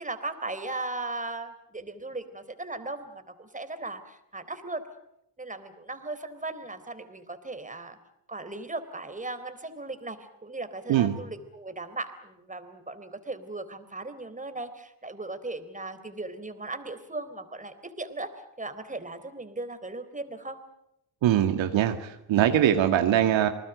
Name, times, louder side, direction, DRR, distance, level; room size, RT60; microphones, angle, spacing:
voice 1, 0.0-4.9 5.4-8.0 8.3-18.3 18.6-20.6, right 2 dB, 15° right, 10 dB, 3.7 m, -37 dB
voice 2, 21.2-23.5, right 11 dB, 70° right, 7 dB, 2.0 m, -22 dB
28.0 x 20.0 x 8.1 m, 0.80 s
supercardioid pair, 70°, 47 cm